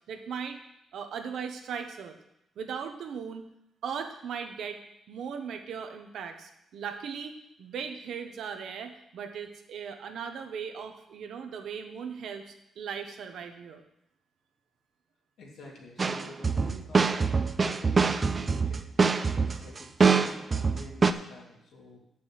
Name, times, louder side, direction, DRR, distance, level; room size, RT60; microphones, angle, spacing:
voice 1, 0.1-0.6 0.9-2.2 2.6-3.5 3.8-4.8 5.1-13.8, right 6 dB, 75° right, 6 dB, 1.1 m, -38 dB
voice 2, 15.4-17.3 17.6-18.9 19.3-22.0, left 2 dB, 80° left, -2 dB, 2.8 m, -48 dB
sound 1, 16.0-21.1, right 5 dB, 30° right, 0.4 m, -24 dB
8.1 x 6.2 x 7.7 m, 0.81 s
cardioid pair, 140°, 0 cm